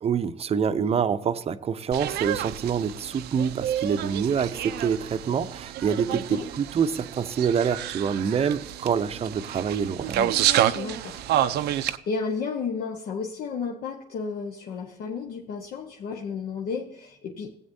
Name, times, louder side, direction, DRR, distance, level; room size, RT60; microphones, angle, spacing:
voice 1, 0.0-10.2, right 7 dB, 35° right, 0.7 m, -26 dB
sound 1, 1.9-12.0, right 12 dB, 75° right, 0.6 m, -29 dB
voice 2, 6.1-6.5 10.1-10.4 10.7-11.2 11.8-17.5, left 5 dB, 70° left, 1.3 m, -33 dB
16.0 x 8.5 x 2.7 m
cardioid pair, 110°, 17 cm